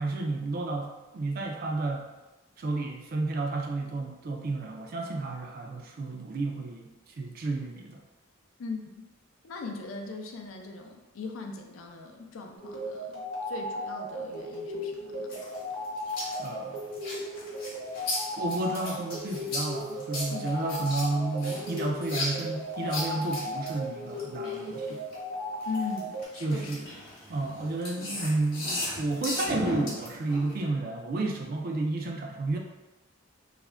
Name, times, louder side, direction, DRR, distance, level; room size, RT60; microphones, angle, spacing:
voice 1, 0.0-2.1 2.6-8.0 16.4-16.9 18.4-25.0 26.4-26.9 27.3-32.6, right 2 dB, 45° right, 2 dB, 0.3 m, -31 dB
voice 2, 8.6-9.0 9.4-15.4 20.3-20.5 25.7-27.0, left 4 dB, 70° left, 3 dB, 0.4 m, -39 dB
sound 1, 12.6-26.2, left 1 dB, 70° right, 0.9 m, -36 dB
sound 2, 15.3-25.1 25.6-30.6, left 1 dB, 45° left, 0.9 m, -36 dB
2.4 x 2.1 x 3.3 m, 1.1 s
head